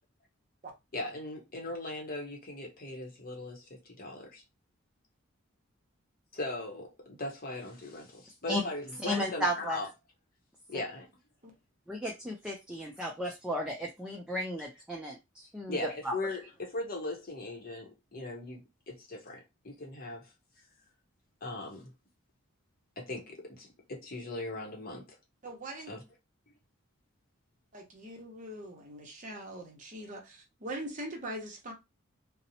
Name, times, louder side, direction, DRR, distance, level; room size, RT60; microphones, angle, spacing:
voice 1, 0.9-4.4 6.3-9.9 10.7-11.1 15.7-18.6 18.9-20.3 21.4-21.9 23.0-25.2 25.9-26.0, left 2 dB, 45° left, 0.7 m, -39 dB
voice 2, 9.0-9.8 11.9-16.1, equal, 5° right, 0.3 m, -34 dB
voice 3, 25.4-25.9 27.7-31.7, right 1 dB, 35° right, 0.7 m, -42 dB
2.7 x 2.0 x 2.7 m
head